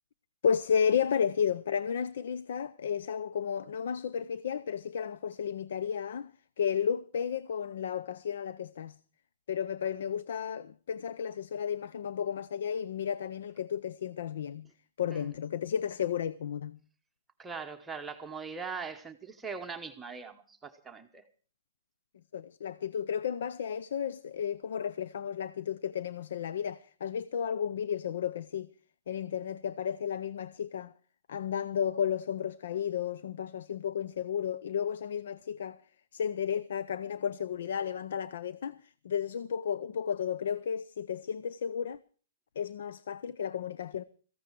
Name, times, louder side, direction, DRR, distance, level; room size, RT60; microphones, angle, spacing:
voice 1, 0.4-6.3 6.6-9.0 9.5-14.7 15.0-16.8 22.3-28.7 29.1-30.9 31.3-35.8 36.1-42.0 42.6-44.0, left 8 dB, 70° left, 0.6 m, -33 dB
voice 2, 17.4-21.2, right 5 dB, 10° right, 1.0 m, -41 dB
16.5 x 15.0 x 4.6 m
hypercardioid pair, 155°, 0 cm